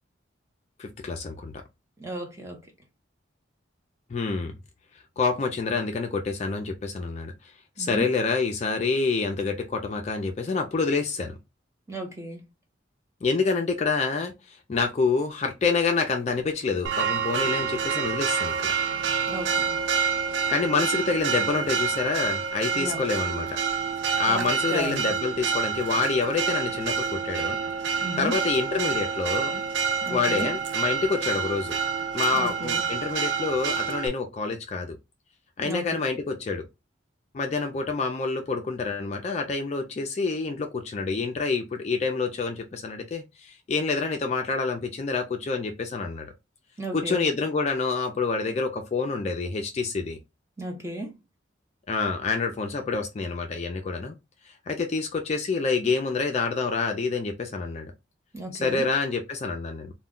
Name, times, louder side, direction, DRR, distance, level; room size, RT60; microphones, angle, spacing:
voice 1, 0.8-1.6 4.1-4.5 5.2-7.3 7.8-11.4 13.2-18.7 20.5-23.6 24.2-27.6 28.2-29.6 30.1-31.8 32.1-35.0 35.6-36.6 37.3-46.3 46.9-50.2 51.9-54.1 54.5-57.9 58.6-59.9, left 4 dB, 35° left, 0.3 m, -27 dB
voice 2, 2.0-2.6 7.8-8.1 11.9-12.4 19.3-19.8 22.7-23.0 24.3-25.0 28.0-28.4 30.0-30.5 32.3-32.9 35.6-35.9 46.8-47.3 50.6-51.1 58.3-58.9, right 1 dB, 15° right, 0.7 m, -34 dB
Church bell, 16.8-34.1, right 6 dB, 60° right, 0.3 m, -28 dB
2.1 x 2.1 x 3.6 m
head